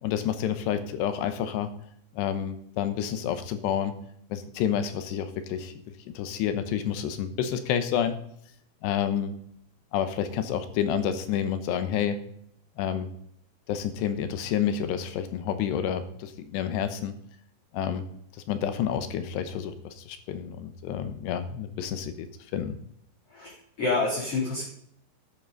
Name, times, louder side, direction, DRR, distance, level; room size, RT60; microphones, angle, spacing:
voice 1, 0.0-1.7 2.2-3.9 4.3-5.7 6.2-8.1 8.8-9.4 9.9-12.2 12.8-13.1 13.7-17.2 17.7-18.0 18.5-22.3 22.5-22.8, left 9 dB, 90° left, 10 dB, 3.2 m, -29 dB
voice 2, 23.3-24.6, left 3 dB, 35° left, -6 dB, 3.7 m, -28 dB
12.5 x 11.0 x 4.0 m, 0.69 s
omnidirectional pair, 4.9 m